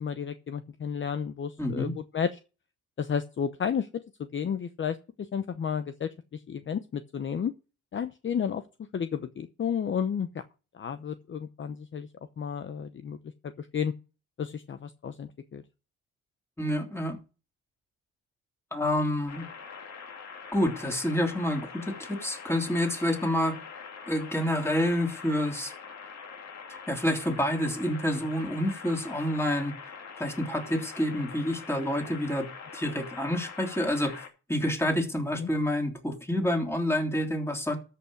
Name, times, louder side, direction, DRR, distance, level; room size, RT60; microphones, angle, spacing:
voice 1, 0.0-2.4 3.0-3.9 4.3-7.5 7.9-8.6 8.9-10.4 10.7-12.1 12.4-13.2 13.4-13.9 14.4-15.6 35.4-35.5, left 7 dB, 40° left, 0.8 m, -32 dB
voice 2, 1.6-1.9 16.6-17.2 18.7-19.5 20.5-23.6 24.1-25.7 26.9-29.8 30.2-32.5 32.7-37.8, left 1 dB, 10° left, 3.2 m, -28 dB
sound 1, 19.3-34.3, left 5 dB, 60° left, 2.7 m, -44 dB
13.5 x 5.8 x 6.1 m
cardioid pair, 90°, 30 cm